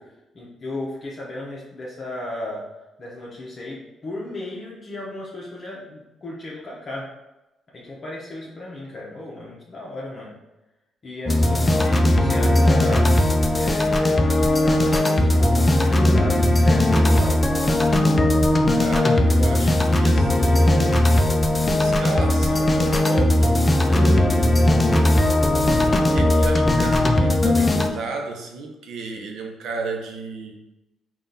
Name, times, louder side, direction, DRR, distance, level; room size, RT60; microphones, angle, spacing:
voice 1, 0.0-2.7 3.0-7.1 7.7-10.3 11.0-13.2 13.5-17.4, left 1 dB, 40° left, -5 dB, 0.8 m, -35 dB
sound 1, 11.3-27.9, left 1 dB, 20° left, 0.4 m, -18 dB
voice 2, 18.6-21.2 21.8-23.5 23.9-24.6 25.7-30.6, right 3 dB, 75° right, 2 dB, 0.7 m, -33 dB
3.8 x 2.4 x 4.0 m, 0.99 s
cardioid pair, 90°, 0 cm